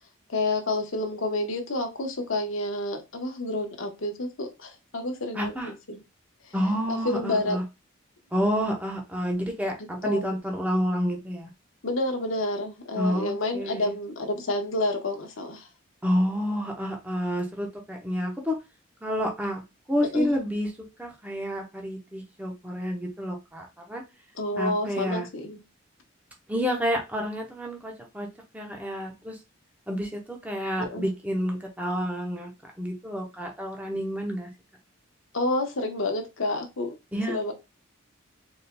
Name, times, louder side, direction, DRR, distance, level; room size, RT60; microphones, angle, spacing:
voice 1, 0.3-6.0 6.9-7.6 10.0-10.4 11.8-15.7 20.1-20.3 24.3-25.6 30.8-31.1 35.3-37.0 37.3-37.5, left 2 dB, 70° left, 1.0 m, -29 dB
voice 2, 5.3-5.7 6.5-7.6 8.3-11.5 13.0-13.9 16.0-18.6 19.0-19.6 19.9-20.7 21.0-24.0 24.6-25.3 26.5-28.3 28.5-29.3 29.9-32.5 32.8-34.5 37.1-37.5, equal, 5° right, 0.8 m, -29 dB
4.2 x 3.6 x 2.2 m
head